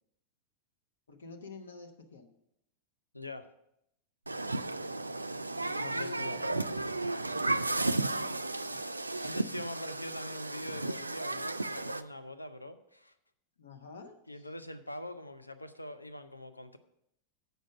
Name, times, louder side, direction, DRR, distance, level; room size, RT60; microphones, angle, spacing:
voice 1, 1.1-2.3 5.6-7.0 7.3-8.8 13.6-14.5, left 3 dB, 70° left, 4 dB, 1.0 m, -49 dB
voice 2, 3.1-3.5 5.8-6.4 9.2-13.2 14.3-16.8, left 1 dB, 85° left, 9 dB, 0.6 m, -43 dB
Human group actions, 4.3-12.0, right 2 dB, 85° right, 0.3 m, -34 dB
7.9 x 6.4 x 6.5 m, 0.79 s
figure-of-eight pair, 90°, 0 cm